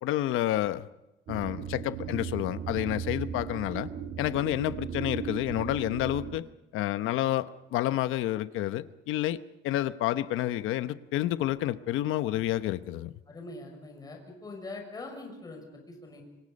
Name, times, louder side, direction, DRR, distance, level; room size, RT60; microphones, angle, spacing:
voice 1, 0.0-0.9 1.3-3.9 4.2-6.5 6.7-9.4 9.6-13.1, left 14 dB, 85° left, 1.0 m, -29 dB
sound 1, 1.3-6.4, right 7 dB, 55° right, 1.8 m, -37 dB
voice 2, 13.3-16.2, left 2 dB, 20° left, 6.1 m, -43 dB
26.5 x 24.0 x 5.4 m
cardioid pair, 160°, 20 cm